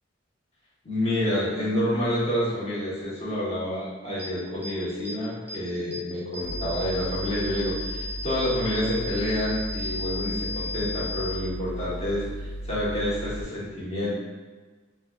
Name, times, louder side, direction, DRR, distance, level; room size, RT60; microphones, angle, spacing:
voice 1, 0.8-14.2, left 1 dB, 35° left, -9 dB, 1.2 m, -28 dB
sound 1, 4.2-4.3 4.6-4.7 5.0-5.1 5.5-5.6 5.9-6.0 6.3-11.3, left 2 dB, 10° right, 0.5 m, -35 dB
Mechanical fan, 6.4-13.4, right 1 dB, 70° right, 0.4 m, -36 dB
5.1 x 2.2 x 2.4 m, 1.4 s
head